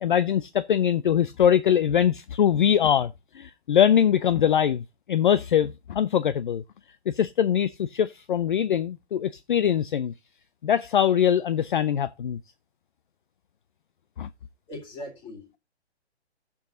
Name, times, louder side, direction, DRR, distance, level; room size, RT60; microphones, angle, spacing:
voice 1, 0.0-4.8 5.1-6.6 7.1-10.1 10.6-12.4 14.2-14.3, left 9 dB, 50° left, 0.5 m, -22 dB
voice 2, 14.7-15.6, left 1 dB, 15° left, 2.5 m, -40 dB
15.5 x 7.1 x 2.5 m
hypercardioid pair, 165°, 33 cm